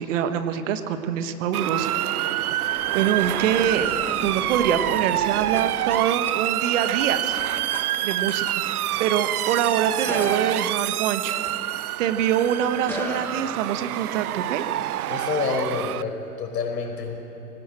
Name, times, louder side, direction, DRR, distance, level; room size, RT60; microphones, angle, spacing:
voice 1, 0.0-2.3 2.9-3.9 4.2-7.4 8.0-8.5 9.0-11.3 12.0-14.6, right 9 dB, 50° right, 9 dB, 1.5 m, -25 dB
Motor vehicle (road) / Siren, 1.5-16.0, right 14 dB, 65° right, 0.6 m, -27 dB
sound 1, 1.8-12.1 12.7-14.2, left 2 dB, 5° left, 1.1 m, -39 dB
voice 2, 15.1-17.2, left 5 dB, 80° left, 2 dB, 4.9 m, -28 dB
19.5 x 18.0 x 7.7 m, 2.9 s
hypercardioid pair, 130°, 48 cm